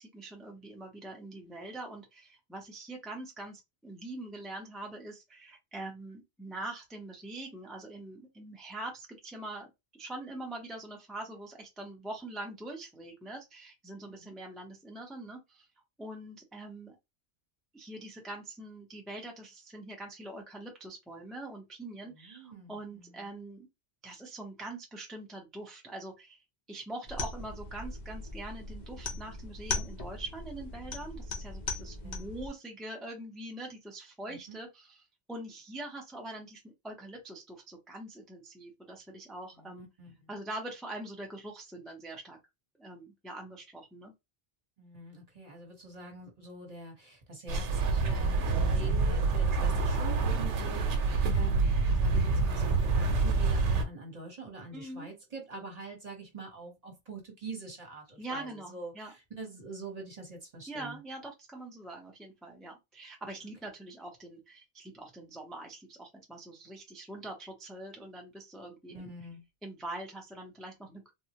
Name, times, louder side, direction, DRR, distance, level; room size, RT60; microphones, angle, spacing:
voice 1, 0.0-15.7 16.0-17.0 17.7-23.7 24.0-35.0 35.3-39.9 40.3-42.4 42.8-44.1 54.7-55.1 58.2-59.1 60.7-69.1 69.6-71.1, right 2 dB, ahead, 0.5 m, -43 dB
voice 2, 22.1-23.4 31.9-32.3 34.3-34.6 39.5-40.3 44.8-61.0 68.9-69.4, right 3 dB, 40° right, 1.0 m, -45 dB
sound 1, 27.1-32.5, left 3 dB, 50° left, 0.7 m, -39 dB
sound 2, 47.5-53.8, right 3 dB, 85° right, 0.9 m, -27 dB
3.5 x 2.0 x 2.8 m
omnidirectional pair, 1.2 m